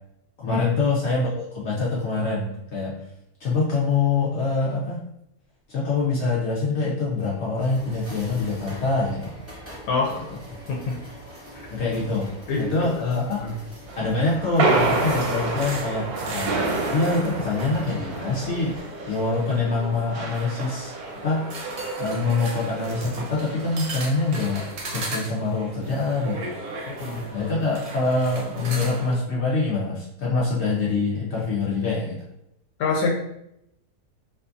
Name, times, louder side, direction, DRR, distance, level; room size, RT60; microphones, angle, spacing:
voice 1, 0.4-3.0 3.4-5.0 5.7-9.3 10.1-10.2 11.7-12.3 12.6-13.4 14.0-16.5 16.9-18.8 19.1-20.9 21.2-21.4 22.0-26.5 27.3-32.2, left 3 dB, 65° left, -5 dB, 0.7 m, -25 dB
sound 1, 7.6-18.8, right 1 dB, 15° right, 0.6 m, -43 dB
voice 2, 9.9-10.2 10.7-11.0 11.5-11.7 12.5-12.7 13.4-13.6 26.9-27.4 32.8-33.1, left 3 dB, 85° left, -1 dB, 1.1 m, -26 dB
sound 2, 13.9-24.8, right 3 dB, 85° right, 1.1 m, -29 dB
sound 3, 15.6-29.1, right 2 dB, 60° right, 0.8 m, -37 dB
2.6 x 2.4 x 2.5 m, 0.78 s
omnidirectional pair, 1.6 m